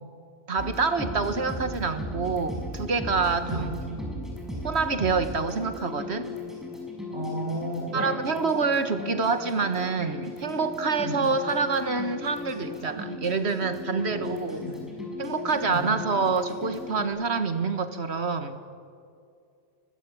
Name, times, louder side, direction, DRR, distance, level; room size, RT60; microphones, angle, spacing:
voice 1, 0.5-4.0 4.6-6.3 7.9-14.6 15.2-18.6, right 4 dB, 85° right, 9 dB, 1.8 m, -27 dB
sound 1, 0.6-17.1, left 1 dB, ahead, 5.7 m, -37 dB
voice 2, 7.1-8.2 11.0-11.3 14.1-14.2 14.5-14.8 15.7-15.9, right 1 dB, 45° right, -3 dB, 6.8 m, -33 dB
24.5 x 19.0 x 8.7 m, 2.4 s
omnidirectional pair, 1.1 m